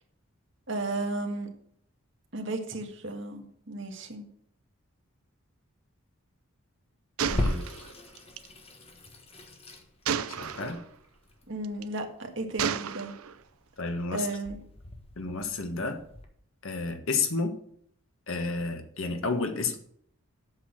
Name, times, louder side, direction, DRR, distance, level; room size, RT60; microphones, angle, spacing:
voice 1, 0.7-1.5 2.3-4.3 11.5-13.1 14.1-14.6, right 2 dB, 55° right, 4 dB, 1.6 m, -34 dB
Gunshot gunfire, 7.2-8.5 10.1-10.8 11.6-12.0 12.6-13.4, right 7 dB, 80° right, 0.6 m, -32 dB
voice 2, 7.3-7.6 10.3-10.8 13.8-14.3 15.2-16.0 16.6-17.6 18.3-19.8, left 3 dB, 65° left, 6 dB, 1.4 m, -31 dB
Water tap faucet / Sink (filling or washing), 7.3-16.2, left 1 dB, 25° left, 1.3 m, -38 dB
8.1 x 6.2 x 7.7 m, 0.65 s
head